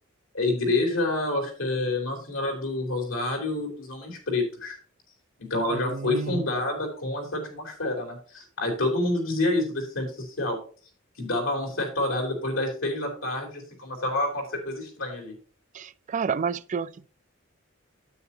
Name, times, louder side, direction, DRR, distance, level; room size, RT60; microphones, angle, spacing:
voice 1, 0.3-4.8 5.4-10.6 11.2-15.3, left 2 dB, 90° left, 3.8 m, -28 dB
voice 2, 5.7-6.4 15.7-17.1, right 6 dB, 40° right, 0.4 m, -30 dB
9.5 x 8.8 x 2.8 m
head